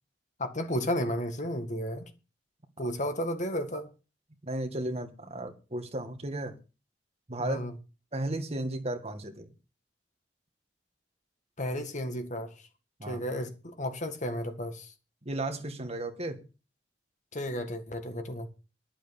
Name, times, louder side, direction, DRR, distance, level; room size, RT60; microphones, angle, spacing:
voice 1, 0.4-2.1 2.8-3.9 7.4-7.7 11.6-12.5 13.0-14.9 17.3-18.5, equal, 45° left, 1.8 m, -33 dB
voice 2, 4.4-6.6 7.3-7.6 8.1-9.5 13.0-13.2 15.3-16.4, right 1 dB, 35° right, 1.8 m, -34 dB
11.5 x 7.6 x 7.1 m
head